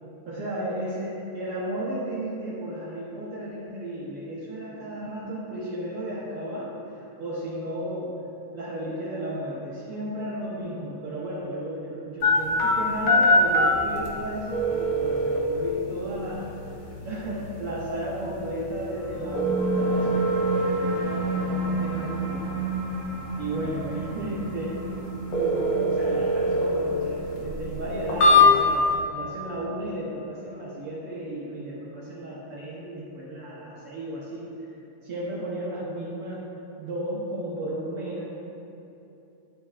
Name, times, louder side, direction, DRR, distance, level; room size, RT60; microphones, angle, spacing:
voice 1, 0.3-8.2 8.5-16.5 17.0-22.5 23.4-24.8 25.3-34.5 35.0-36.5 36.8-38.2, right 1 dB, 70° right, -6 dB, 1.3 m, -34 dB
sound 1, 12.2-28.9, left 1 dB, 80° left, 1.1 m, -25 dB
sound 2, 18.9-29.9, right 2 dB, 55° right, 1.0 m, -32 dB
11.0 x 5.1 x 2.4 m, 3.0 s
omnidirectional pair, 3.5 m